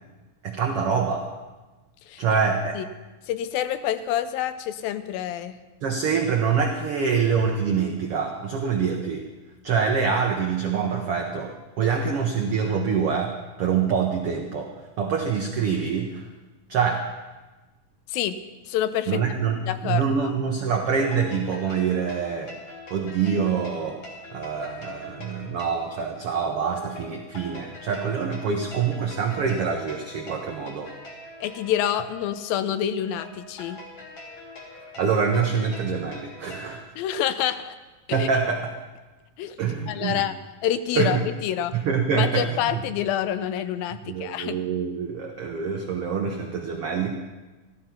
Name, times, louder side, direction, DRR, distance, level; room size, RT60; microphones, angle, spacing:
voice 1, 0.4-1.3 2.2-2.7 5.8-9.2 9.6-16.2 16.7-17.1 19.1-22.5 22.9-24.0 24.3-30.9 35.0-36.8 38.1-38.7 39.6-40.2 40.9-41.2 41.7-42.8 44.0-47.1, right 6 dB, 80° right, 2 dB, 1.2 m, -25 dB
voice 2, 2.1-2.4 2.7-2.9 3.3-5.5 18.1-18.4 18.7-19.2 19.7-20.3 31.4-33.8 37.0-37.8 38.1-38.3 39.4-40.4 40.6-41.8 42.1-44.6, left 11 dB, 85° left, 12 dB, 2.5 m, -27 dB
sound 1, 21.0-36.8, left 1 dB, 40° left, 2.1 m, -43 dB
14.5 x 13.0 x 5.8 m, 1.2 s
omnidirectional pair, 4.1 m